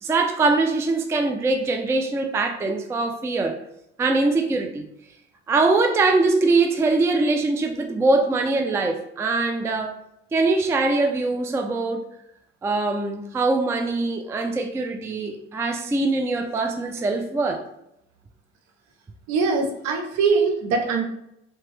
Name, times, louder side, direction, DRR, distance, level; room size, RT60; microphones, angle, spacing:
voice 1, 0.0-3.6 4.0-4.9 5.5-10.0 10.3-12.0 12.6-17.6, right 3 dB, 10° right, 4 dB, 0.3 m, -22 dB
voice 2, 19.3-21.0, right 4 dB, 60° right, 3 dB, 0.7 m, -22 dB
2.8 x 2.2 x 3.1 m, 0.78 s
hypercardioid pair, 70°, 30 cm